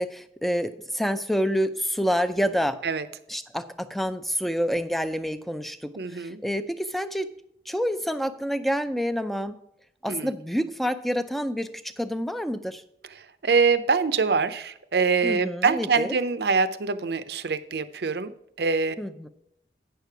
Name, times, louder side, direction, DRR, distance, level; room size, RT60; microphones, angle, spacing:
voice 1, 0.0-2.8 3.3-7.3 7.7-9.6 10.0-12.8 15.2-16.2 19.0-19.3, equal, ahead, 11 dB, 0.4 m, -28 dB
voice 2, 6.0-6.4 10.1-10.3 13.2-18.3 18.6-19.0, right 5 dB, 65° right, 13 dB, 0.6 m, -24 dB
9.1 x 6.6 x 4.6 m, 0.78 s
head